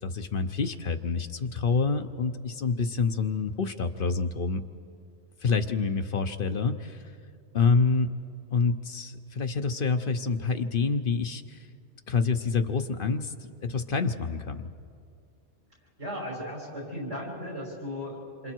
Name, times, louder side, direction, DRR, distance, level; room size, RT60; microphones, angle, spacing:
voice 1, 0.0-4.6 5.4-7.1 7.5-8.1 8.5-11.7 12.1-13.3 13.6-14.7, left 4 dB, 55° left, 8 dB, 1.0 m, -27 dB
voice 2, 16.0-18.5, equal, 85° right, -3 dB, 6.7 m, -36 dB
27.5 x 26.5 x 4.6 m, 2.3 s
omnidirectional pair, 1.2 m